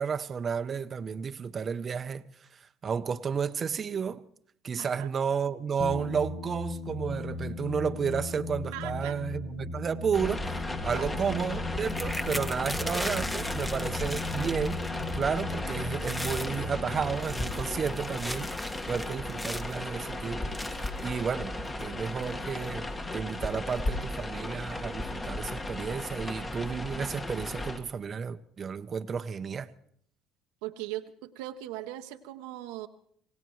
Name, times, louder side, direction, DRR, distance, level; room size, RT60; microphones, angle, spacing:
voice 1, 0.0-4.2 4.6-10.4 10.8-14.8 15.1-29.7, right 6 dB, 40° right, 0.7 m, -32 dB
voice 2, 4.8-5.1 8.7-9.2 10.9-11.1 30.6-32.9, right 14 dB, 85° right, 0.8 m, -39 dB
sound 1, 5.8-19.0, left 3 dB, 50° left, 1.4 m, -38 dB
sound 2, 10.1-27.8, left 2 dB, 25° left, 1.6 m, -35 dB
sound 3, 11.9-15.2 15.5-15.7 16.0-16.6 17.1-19.8 20.5-21.1 21.8-21.9 22.2-22.5, left 1 dB, 10° left, 1.0 m, -38 dB
27.0 x 17.0 x 3.1 m
supercardioid pair, 80°, 0 cm